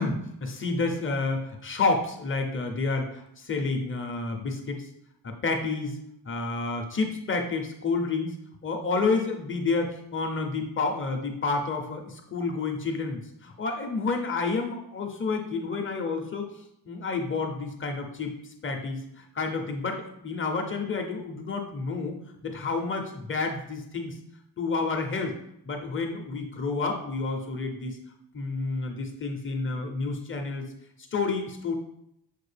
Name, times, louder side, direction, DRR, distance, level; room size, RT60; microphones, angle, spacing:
voice 1, 0.0-4.9 5.2-6.0 6.3-8.3 8.6-16.5 16.9-18.3 18.6-22.2 22.4-24.1 24.6-25.3 25.7-28.0 28.3-30.7 31.1-31.7, left 3 dB, 30° left, 3 dB, 0.5 m, -29 dB
6.6 x 2.4 x 3.3 m, 0.76 s
wide cardioid pair, 155°, 42 cm